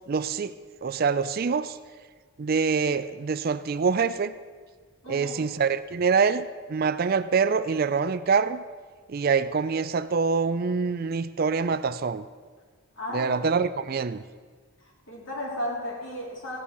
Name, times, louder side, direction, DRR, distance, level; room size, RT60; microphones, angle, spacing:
voice 1, 0.1-0.5 0.8-1.8 2.4-4.3 5.1-8.6 9.1-12.2 13.1-14.2, right 5 dB, 45° right, 13 dB, 0.4 m, -25 dB
voice 2, 5.0-5.4 13.0-13.4 14.8-16.6, left 1 dB, 60° left, -3 dB, 3.8 m, -34 dB
16.0 x 9.9 x 6.0 m, 1.5 s
head